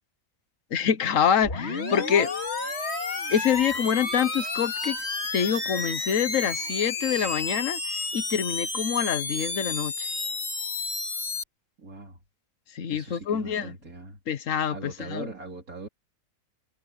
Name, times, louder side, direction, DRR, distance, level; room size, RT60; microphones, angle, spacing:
voice 1, 0.7-2.3 3.3-5.0 5.3-7.8 8.1-10.1 12.7-13.7 14.3-15.3, left 8 dB, 70° left, 1.5 m, -26 dB
sound 1, 1.4-11.4, left 3 dB, 50° left, 2.5 m, -31 dB
voice 2, 11.8-12.2 12.9-14.2 14.7-15.9, right 3 dB, 80° right, 4.4 m, -41 dB
omnidirectional pair, 1.5 m